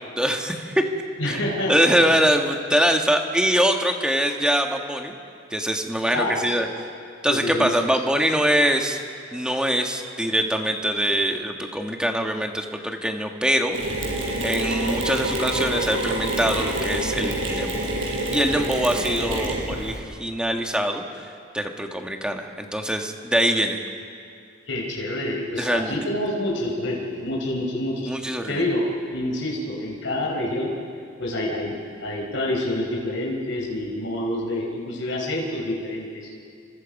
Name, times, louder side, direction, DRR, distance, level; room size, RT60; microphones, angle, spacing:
voice 1, 0.2-0.8 1.3-1.4 1.7-5.1 5.5-6.7 7.2-9.0 9.3-13.8 14.4-18.0 18.3-21.0 21.5-23.8 25.6-26.0 28.1-28.6, equal, 5° right, 3 dB, 1.6 m, -23 dB
voice 2, 1.2-1.9 6.1-6.6 7.3-7.9 24.7-28.1 28.5-30.7 31.2-31.7 32.0-36.3, left 1 dB, 90° left, -3 dB, 4.4 m, -27 dB
Mechanisms, 13.7-20.0, right 1 dB, 75° right, 5.7 m, -27 dB
29.5 x 24.5 x 5.4 m, 2.4 s
head